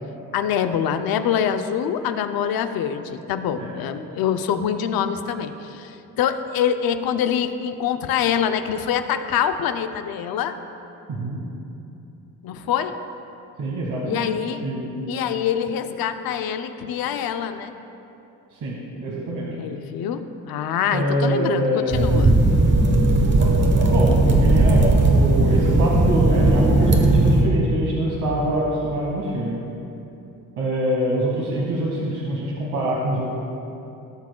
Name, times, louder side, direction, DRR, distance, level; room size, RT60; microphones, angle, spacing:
voice 1, 0.3-10.5 12.4-13.0 14.0-14.6 15.1-17.7 19.6-22.4, left 8 dB, 80° left, 9 dB, 0.6 m, -25 dB
voice 2, 11.1-11.4 13.6-14.2 14.6-15.0 18.6-19.5 20.9-22.0 23.9-29.6 30.6-33.3, right 1 dB, 60° right, -4 dB, 1.3 m, -25 dB
sound 1, 21.9-27.5, right 2 dB, 30° right, 1.0 m, -17 dB
17.0 x 6.0 x 2.2 m, 2.9 s
cardioid pair, 95°, 36 cm